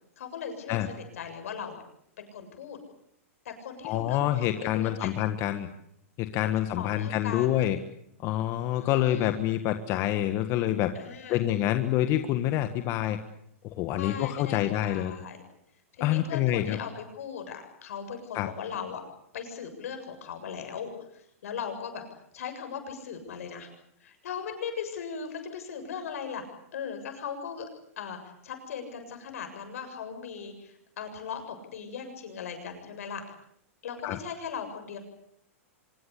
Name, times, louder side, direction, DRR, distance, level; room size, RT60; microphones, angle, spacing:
voice 1, 0.2-1.8 2.2-2.8 3.4-5.1 6.4-7.6 8.8-9.3 10.9-11.4 13.9-15.4 16.0-19.0 19.3-22.0 22.3-23.7 24.0-26.4 26.7-27.7 28.0-33.2 33.8-35.0, left 7 dB, 75° left, 6 dB, 7.3 m, -38 dB
voice 2, 3.8-5.7 6.2-7.8 8.2-10.9 11.3-13.2 13.6-15.1 16.0-16.8 18.3-18.5 34.0-34.2, left 13 dB, 40° left, 8 dB, 1.6 m, -27 dB
25.5 x 22.5 x 8.5 m, 0.72 s
hypercardioid pair, 135°, 8 cm